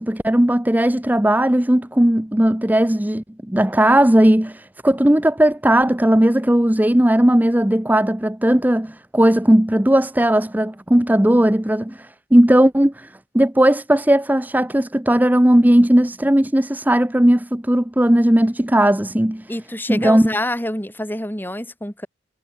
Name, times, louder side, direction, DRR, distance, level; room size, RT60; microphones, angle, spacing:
voice 1, 0.0-19.5 19.9-20.3, right 1 dB, 10° right, 0.7 m, -17 dB
voice 2, 19.5-22.1, left 1 dB, 10° left, 4.9 m, -27 dB
head